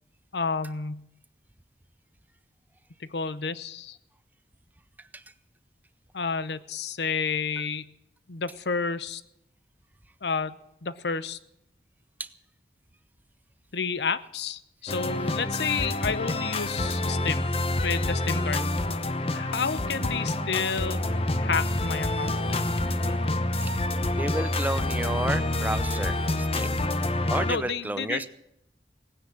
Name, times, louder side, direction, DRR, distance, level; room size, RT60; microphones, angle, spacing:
voice 1, 0.3-1.1 3.0-4.0 6.1-7.9 8.3-9.2 10.2-11.4 13.7-17.5 17.8-18.7 19.3-22.7 27.4-28.3, left 5 dB, 80° left, 15 dB, 0.8 m, -30 dB
sound 1, 14.9-27.5, left 2 dB, 35° left, 0.9 m, -27 dB
voice 2, 18.3-18.7 24.1-26.8 27.3-28.3, right 1 dB, 10° right, 12 dB, 0.6 m, -31 dB
18.0 x 9.9 x 7.3 m, 0.82 s
head